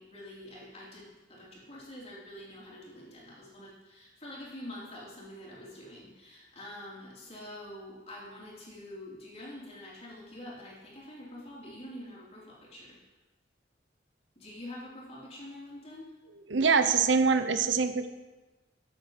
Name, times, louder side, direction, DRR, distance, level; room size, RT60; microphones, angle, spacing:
voice 1, 0.0-13.0 14.4-16.1, left 1 dB, 35° left, -5 dB, 3.8 m, -46 dB
voice 2, 16.5-18.1, right 5 dB, 85° right, 9 dB, 0.8 m, -24 dB
13.5 x 8.2 x 5.1 m, 1.2 s
head